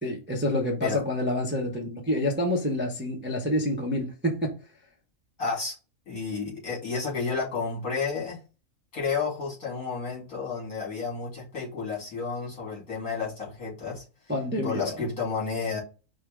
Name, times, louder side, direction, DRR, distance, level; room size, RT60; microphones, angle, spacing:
voice 1, 0.0-4.5 14.3-15.0, left 1 dB, 10° right, 0.6 m, -27 dB
voice 2, 5.4-5.8 6.1-8.4 8.9-14.0 14.6-15.8, left 5 dB, 70° left, 2.8 m, -31 dB
5.0 x 2.2 x 4.8 m
omnidirectional pair, 1.6 m